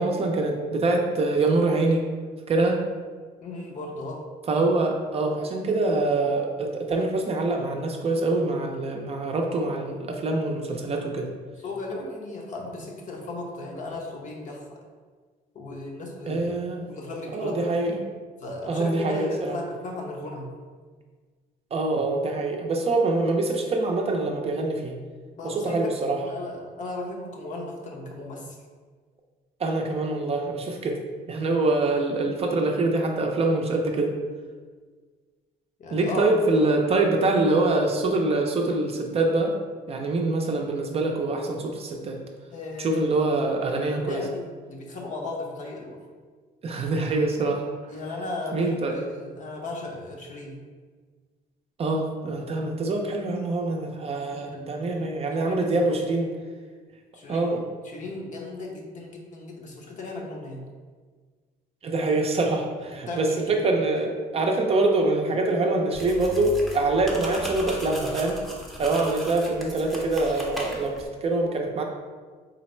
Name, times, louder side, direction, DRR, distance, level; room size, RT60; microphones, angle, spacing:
voice 1, 0.0-2.0 2.5-2.8 4.5-11.3 16.3-16.8 17.3-17.9 18.7-19.5 21.7-25.0 25.4-26.2 29.6-31.0 31.3-34.1 35.9-39.5 39.9-42.2 42.8-44.2 46.6-47.7 48.5-49.0 51.8-56.3 57.3-57.6 61.8-68.4 68.8-71.8, right 2 dB, 35° right, 2 dB, 0.5 m, -25 dB
voice 2, 3.4-4.3 11.6-14.8 15.5-16.5 16.9-17.7 18.4-20.5 25.4-25.9 26.2-28.6 35.8-36.8 42.5-43.3 43.7-46.0 47.9-50.6 54.2-56.0 57.1-60.7 62.9-64.0, left 2 dB, 45° left, 0 dB, 0.8 m, -36 dB
sound 1, 65.9-71.1, right 1 dB, ahead, 0.7 m, -37 dB
3.9 x 2.0 x 4.3 m, 1.5 s
cardioid pair, 110°, 17 cm